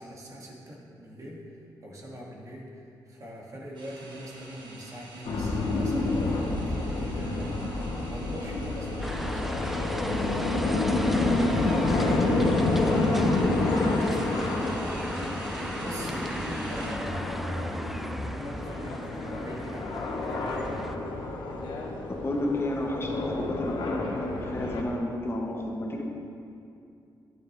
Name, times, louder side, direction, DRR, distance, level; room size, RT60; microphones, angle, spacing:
voice 1, 0.0-7.6 7.8-10.0 11.1-12.5 12.8-14.9 15.8-20.9, equal, 45° right, -3 dB, 2.2 m, -42 dB
sound 1, 3.8-16.9, right 2 dB, 75° right, 1.5 m, -47 dB
sound 2, 5.3-24.8, left 2 dB, 85° left, 1.2 m, -29 dB
sound 3, 9.0-20.9, equal, ahead, 0.4 m, -36 dB
voice 2, 22.2-26.0, left 1 dB, 30° left, 0 dB, 1.1 m, -31 dB
11.5 x 9.2 x 3.4 m, 2.6 s
cardioid pair, 90°, 8 cm